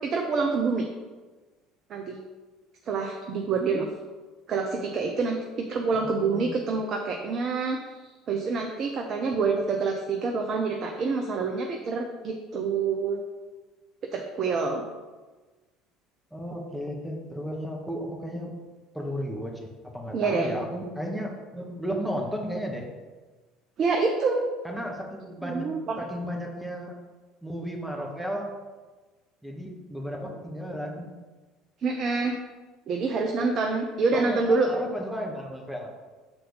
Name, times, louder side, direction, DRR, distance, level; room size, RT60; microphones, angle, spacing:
voice 1, 0.0-0.9 1.9-2.2 2.9-3.9 4.5-13.2 14.1-14.8 20.1-20.5 23.8-24.4 25.4-26.0 31.8-32.4 32.9-34.7, right 4 dB, 45° right, 2 dB, 0.8 m, -27 dB
voice 2, 5.9-6.5 16.3-18.5 18.9-19.7 19.9-22.8 24.6-27.0 27.4-28.5 29.4-31.1 34.1-35.9, equal, ahead, 0 dB, 1.6 m, -34 dB
7.0 x 4.2 x 5.3 m, 1.3 s
figure-of-eight pair, 60°, 0 cm